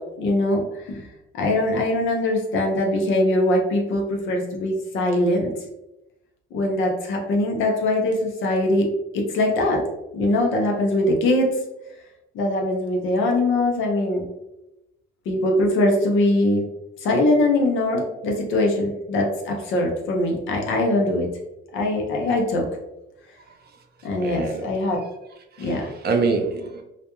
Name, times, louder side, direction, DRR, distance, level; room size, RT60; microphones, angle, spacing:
voice 1, 0.2-1.1 1.3-5.5 6.5-8.9 9.1-9.8 10.1-11.5 12.3-14.2 15.3-16.7 17.0-21.3 21.7-22.7 24.0-25.0 25.6-25.9, left 1 dB, 85° left, 1 dB, 0.7 m, -22 dB
voice 2, 24.2-24.7 25.6-26.8, right 4 dB, 55° right, 3 dB, 0.6 m, -25 dB
2.4 x 2.1 x 2.9 m, 0.92 s
cardioid pair, 90°, 20 cm